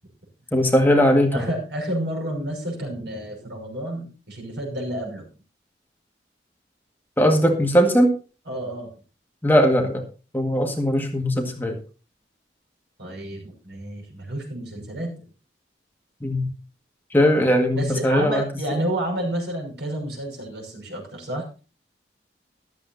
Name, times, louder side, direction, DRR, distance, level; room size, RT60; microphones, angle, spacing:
voice 1, 0.5-1.5 7.2-8.1 9.4-10.0 10.3-11.8 16.2-16.5 17.1-18.5, equal, 10° left, 2 dB, 1.7 m, -19 dB
voice 2, 1.3-5.3 8.5-8.9 13.0-15.2 17.8-21.5, right 1 dB, 75° right, 2 dB, 5.9 m, -30 dB
14.5 x 12.5 x 2.7 m, 0.34 s
head